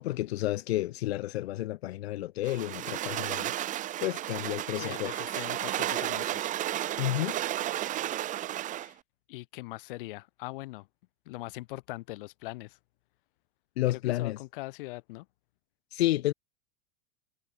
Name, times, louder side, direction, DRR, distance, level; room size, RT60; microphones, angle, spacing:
voice 1, 0.0-3.5 4.0-5.1 7.0-7.4 13.8-14.4 15.9-16.3, left 16 dB, 70° left, 5.6 m, -30 dB
sound 1, 2.4-8.9, right 13 dB, 25° right, 3.5 m, -33 dB
voice 2, 4.8-6.5 8.8-9.0 9.3-10.9 11.3-12.8 13.9-15.3, left 20 dB, 55° left, 7.7 m, -41 dB
supercardioid pair, 175°, 32 cm